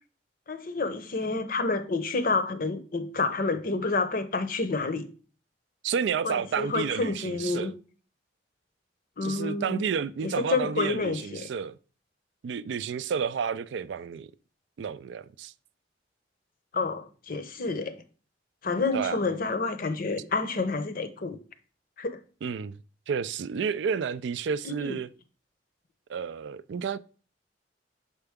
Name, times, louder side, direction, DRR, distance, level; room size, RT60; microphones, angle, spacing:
voice 1, 0.5-5.1 6.2-7.7 9.2-9.8 10.2-11.5 16.7-18.0 18.6-21.4 22.0-22.2 24.6-25.0, left 3 dB, 50° left, 0.7 m, -29 dB
voice 2, 5.8-7.7 9.2-11.8 12.4-14.3 14.8-15.5 18.9-19.2 22.4-22.8 23.1-25.1 26.1-27.0, right 6 dB, 70° right, 0.3 m, -31 dB
6.7 x 4.4 x 3.5 m
head